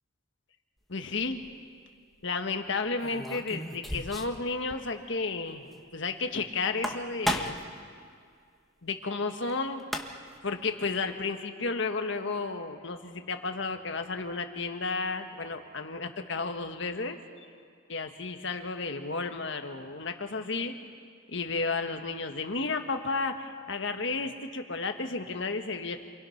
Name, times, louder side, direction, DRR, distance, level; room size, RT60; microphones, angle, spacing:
voice 1, 0.9-1.4 2.2-5.6 5.9-7.6 8.8-9.8 10.4-17.2 17.9-20.9 21.3-26.0, left 3 dB, 65° left, 5 dB, 1.6 m, -32 dB
sound 1, 1.2-1.5 3.0-4.4 4.7-4.8 5.1-5.2 6.6-7.7 9.5-9.6 9.8-10.4, equal, ahead, 1.3 m, -34 dB
28.5 x 24.0 x 5.9 m, 2.2 s
head